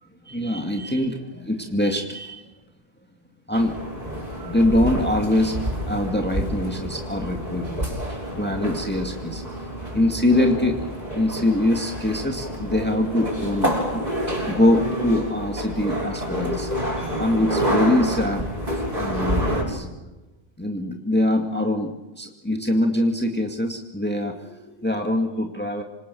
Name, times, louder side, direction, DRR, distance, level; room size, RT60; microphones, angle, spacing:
voice 1, 0.2-2.4 3.5-3.8 4.3-5.5 5.9-7.9 8.4-9.5 9.9-10.9 11.1-14.0 14.5-16.7 17.2-18.5 18.7-19.9 20.6-25.8, left 1 dB, 10° left, 2 dB, 2.2 m, -23 dB
sound 1, 3.5-19.6, equal, 45° right, 6.7 m, -28 dB
27.5 x 26.5 x 7.0 m, 1.1 s
omnidirectional pair, 1.0 m